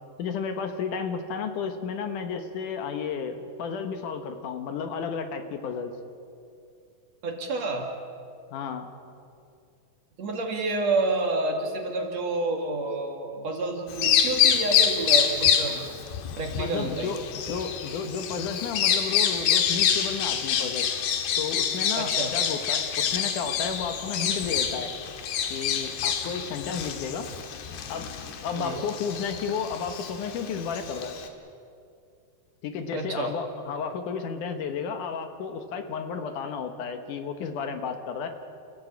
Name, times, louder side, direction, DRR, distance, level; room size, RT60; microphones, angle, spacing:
voice 1, 0.2-5.9 8.5-8.9 13.3-13.5 16.5-17.2 17.5-20.9 21.4-24.9 25.5-27.3 27.9-28.1 28.4-31.2 32.6-38.3, left 6 dB, 65° left, 7 dB, 2.4 m, -32 dB
voice 2, 7.2-7.9 10.2-15.9 16.4-17.1 22.0-22.3 28.6-28.8 32.9-33.3, right 2 dB, 50° right, 2 dB, 2.8 m, -29 dB
Bird vocalization bird call bird song, 13.9-31.3, left 8 dB, 80° left, 3.5 m, -27 dB
29.0 x 14.5 x 8.6 m, 2.5 s
omnidirectional pair, 4.6 m